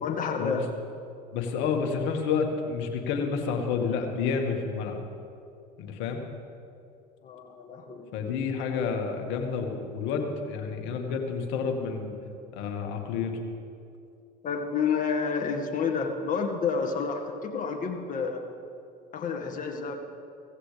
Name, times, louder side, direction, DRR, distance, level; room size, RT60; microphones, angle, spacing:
voice 1, 0.0-0.7 7.2-8.3 14.4-18.5 19.1-20.0, left 5 dB, 40° left, 2 dB, 2.0 m, -30 dB
voice 2, 1.3-5.0 5.8-6.2 8.1-12.2 12.5-13.4, left 5 dB, 65° left, 3 dB, 2.0 m, -29 dB
16.5 x 15.5 x 3.5 m, 2.4 s
hypercardioid pair, 75°, 21 cm